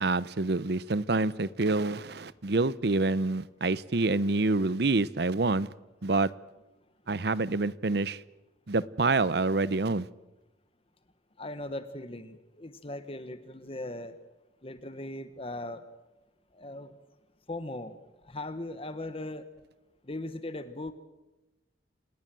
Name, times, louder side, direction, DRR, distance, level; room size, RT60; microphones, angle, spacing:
voice 1, 0.0-5.7 6.0-6.3 7.1-8.2 8.7-10.1, right 3 dB, 65° right, 0.8 m, -27 dB
voice 2, 11.4-14.2 14.6-15.8 16.5-17.0 17.5-19.5 20.0-20.9, left 1 dB, 30° left, 1.2 m, -39 dB
27.0 x 19.5 x 7.7 m
head